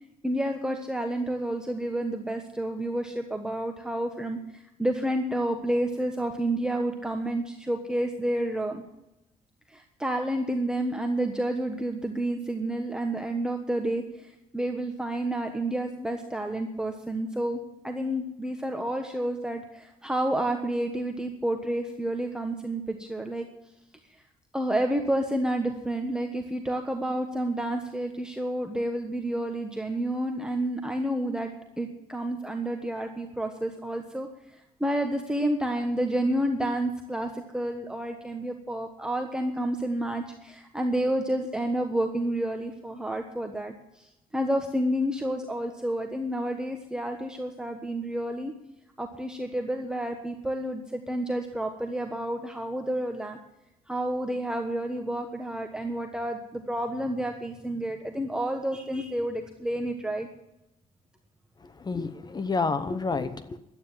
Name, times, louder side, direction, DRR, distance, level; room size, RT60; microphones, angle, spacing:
voice 1, 0.2-8.8 9.7-23.5 24.5-31.5 31.8-48.5 49.0-53.4 53.9-60.3, right 1 dB, 5° right, 3 dB, 1.3 m, -30 dB
voice 2, 61.6-63.6, left 4 dB, 30° left, 12 dB, 0.9 m, -29 dB
12.0 x 9.4 x 9.1 m, 0.92 s
cardioid pair, 95°, 15 cm